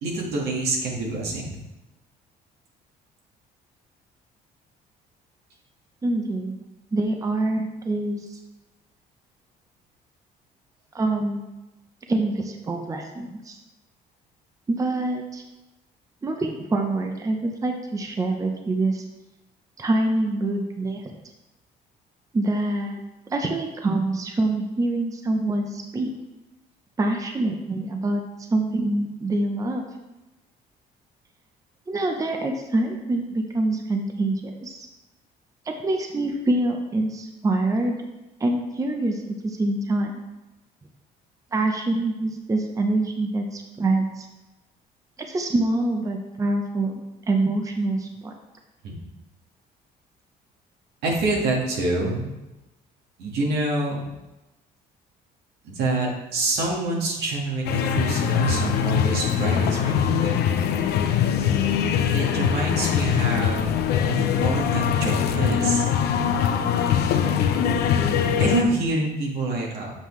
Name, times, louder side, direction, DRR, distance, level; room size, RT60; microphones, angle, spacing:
voice 1, 0.0-1.6 48.8-48.9 51.0-52.3 53.2-54.0 55.6-60.4 62.1-63.7 64.1-65.8 68.4-69.9, right 2 dB, 80° right, -2 dB, 1.7 m, -26 dB
voice 2, 6.0-6.5 6.9-8.4 10.9-11.4 12.1-13.6 14.7-15.4 16.2-19.0 19.8-21.0 22.3-23.0 23.3-26.1 27.0-28.2 28.5-29.8 31.9-34.9 35.8-37.9 38.4-40.1 41.5-44.3 45.3-47.0 47.3-48.3, right 2 dB, 20° right, 3 dB, 0.7 m, -25 dB
sound 1, 57.6-68.6, left 8 dB, 75° left, 0.6 m, -22 dB
7.4 x 5.5 x 3.2 m, 1.0 s
cardioid pair, 110°, 17 cm